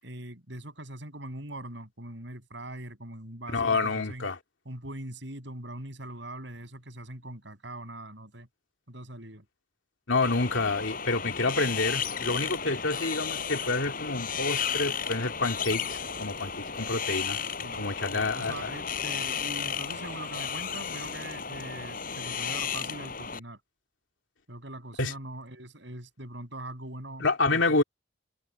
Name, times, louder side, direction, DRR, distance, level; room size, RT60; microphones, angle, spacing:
voice 1, 0.0-4.3 4.7-8.5 8.9-9.5 17.6-23.6 24.5-27.8, right 1 dB, 70° right, 6.9 m, -42 dB
voice 2, 3.5-4.4 10.1-17.4 17.8-18.7 25.0-25.1 27.2-27.8, left 3 dB, 85° left, 2.8 m, -28 dB
Wind, 10.2-23.4, left 7 dB, 45° left, 5.2 m, -34 dB
head